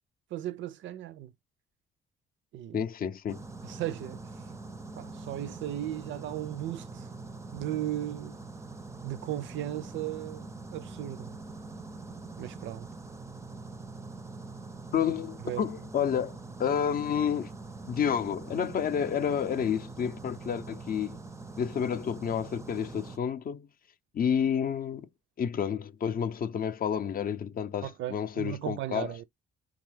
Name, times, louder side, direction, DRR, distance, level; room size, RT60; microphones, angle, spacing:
voice 1, 0.3-1.3 2.5-2.9 3.6-4.4 5.0-7.1 7.5-8.4 9.0-11.4 12.4-12.9 15.4-15.7 27.8-29.2, right 12 dB, 70° right, 0.4 m, -36 dB
voice 2, 2.7-3.4 14.9-17.5 17.9-21.2 21.6-23.7 24.1-25.1 25.4-29.2, left 8 dB, 45° left, 0.5 m, -30 dB
sound 1, 3.3-23.2, right 3 dB, 15° right, 0.4 m, -44 dB
3.6 x 2.3 x 3.2 m
cardioid pair, 90°, 20 cm